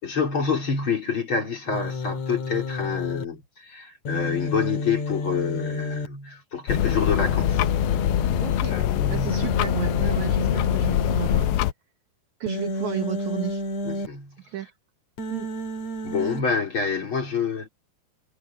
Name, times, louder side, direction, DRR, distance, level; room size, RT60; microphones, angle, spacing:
voice 1, 0.0-7.7 8.7-9.4 13.8-14.4 16.0-17.7, left 5 dB, 30° left, 4.4 m, -27 dB
Human voice, 1.7-3.2 4.1-6.1 6.7-8.6 9.3-11.4 12.5-14.1 15.2-16.4, left 1 dB, 45° left, 3.3 m, -30 dB
sound 1, 6.7-11.7, left 14 dB, 80° left, 2.4 m, -24 dB
voice 2, 8.4-8.8 9.1-11.6 12.4-13.6 14.5-14.7 15.3-15.5, right 12 dB, 80° right, 1.6 m, -33 dB
omnidirectional pair, 4.9 m